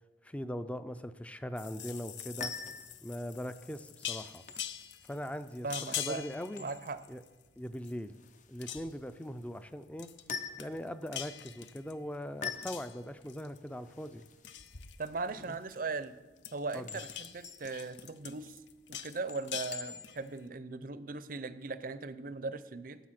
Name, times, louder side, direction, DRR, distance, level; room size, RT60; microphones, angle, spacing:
voice 1, 0.2-2.5 3.0-4.4 5.1-6.7 7.1-7.2 7.6-8.2 8.5-10.1 10.6-14.2 15.5-15.6 16.7-16.9, equal, 10° left, 12 dB, 0.4 m, -40 dB
sound 1, 1.6-7.4 7.7-8.3 8.6-9.1 10.0-10.3 10.6-12.2 12.6-13.7 14.1-16.0 16.4-20.4, left 10 dB, 85° left, 0.6 m, -44 dB
sound 2, 2.1-20.4, left 5 dB, 45° left, 0.6 m, -47 dB
voice 2, 5.6-6.2 6.6-7.0 15.0-16.1 16.5-18.6 18.9-23.0, right 3 dB, 50° right, 13 dB, 0.5 m, -38 dB
12.0 x 7.0 x 5.9 m, 1.2 s
head